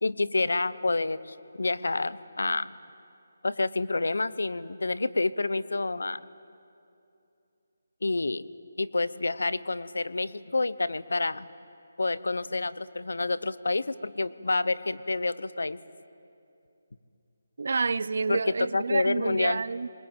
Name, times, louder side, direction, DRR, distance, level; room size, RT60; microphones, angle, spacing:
voice 1, 0.0-2.7 3.4-6.2 8.0-8.5 8.8-11.5 12.0-15.8 18.3-18.4 18.7-19.6, left 3 dB, 85° left, 16 dB, 0.8 m, -28 dB
voice 2, 17.6-19.9, right 4 dB, 55° right, 19 dB, 0.6 m, -29 dB
23.0 x 21.0 x 9.0 m, 2.6 s
hypercardioid pair, 170°, 0 cm